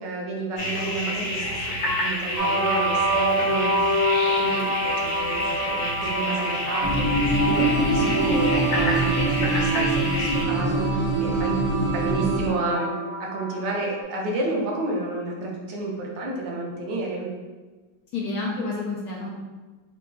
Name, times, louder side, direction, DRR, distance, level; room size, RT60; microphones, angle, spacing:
voice 1, 0.0-7.1 7.4-17.3, right 2 dB, 70° right, -1 dB, 1.3 m, -30 dB
sound 1, 0.6-10.4, left 1 dB, 55° left, 1.0 m, -29 dB
sound 2, 2.4-14.0, equal, 90° right, 0.4 m, -28 dB
voice 2, 3.5-4.0 8.0-8.1 18.1-19.3, left 3 dB, 80° left, -3 dB, 0.8 m, -31 dB
sound 3, 6.8-12.5, right 2 dB, 20° left, 1.1 m, -24 dB
4.3 x 3.0 x 2.2 m, 1.3 s
omnidirectional pair, 2.2 m